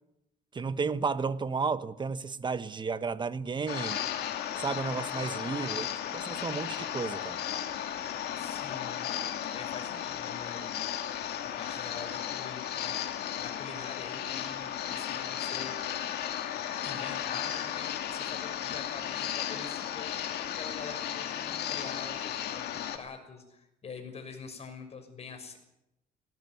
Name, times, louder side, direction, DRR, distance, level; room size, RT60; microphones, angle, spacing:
voice 1, 0.5-4.0 4.6-7.4, right 5 dB, 25° right, 13 dB, 1.2 m, -33 dB
sound 1, 3.7-23.0, left 10 dB, 75° left, 2.8 m, -35 dB
voice 2, 8.4-9.1 9.5-11.1 11.6-13.0 13.3-16.0 16.8-25.6, left 5 dB, 40° left, 6 dB, 6.3 m, -45 dB
19.0 x 18.5 x 9.4 m, 0.87 s
cardioid pair, 110°, 17 cm